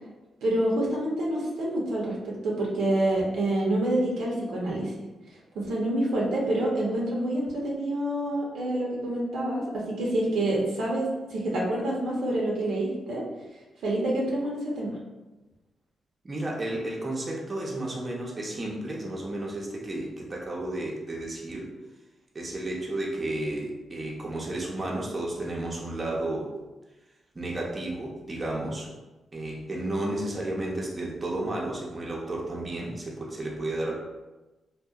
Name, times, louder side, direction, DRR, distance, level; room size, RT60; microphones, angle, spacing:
voice 1, 0.4-4.9 5.6-13.2 13.8-14.9, right 1 dB, 80° right, -4 dB, 0.6 m, -27 dB
voice 2, 16.2-21.7 22.3-26.5 27.3-28.9 29.3-33.9, right 1 dB, 35° right, -2 dB, 0.5 m, -32 dB
2.7 x 2.1 x 2.3 m, 1.1 s
supercardioid pair, 55°, 0 cm